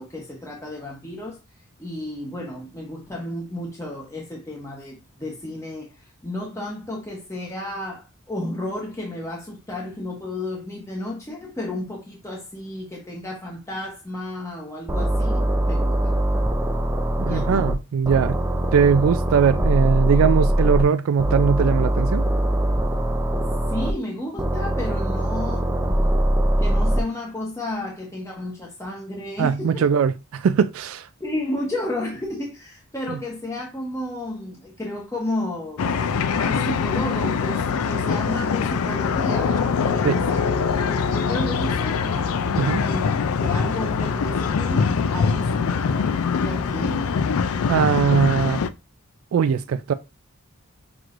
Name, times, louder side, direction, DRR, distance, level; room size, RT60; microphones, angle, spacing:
voice 1, 0.0-1.4 1.8-16.2 17.2-17.7 23.3-26.1 26.6-29.9 31.2-43.1 43.4-47.1, left 1 dB, 15° left, 0.9 m, -32 dB
sound 1, 14.9-17.7 18.0-20.8 21.2-23.9 24.4-27.0, right 1 dB, 10° right, 0.5 m, -22 dB
voice 2, 17.2-18.4 18.7-22.2 29.4-31.1 40.0-40.2 42.5-42.8 47.7-48.6 49.3-49.9, right 6 dB, 70° right, 0.3 m, -20 dB
sound 2, 35.8-48.7, left 5 dB, 85° left, 0.4 m, -23 dB
6.0 x 3.0 x 2.5 m
head